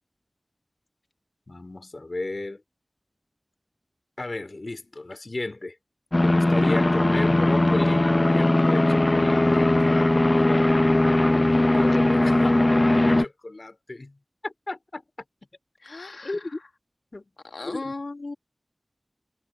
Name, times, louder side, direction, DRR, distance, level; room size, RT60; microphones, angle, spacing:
voice 1, 1.5-2.6 4.2-5.8 6.2-10.7 11.3-14.2 14.4-15.0 16.2-16.6 17.1-17.3 17.6-17.9, left 2 dB, 60° left, 4.6 m, -33 dB
sound 1, 6.1-13.2, left 1 dB, 40° left, 0.8 m, -19 dB
voice 2, 15.8-16.4 17.5-18.3, left 3 dB, 90° left, 1.7 m, -36 dB
wide cardioid pair, 50°, 0 cm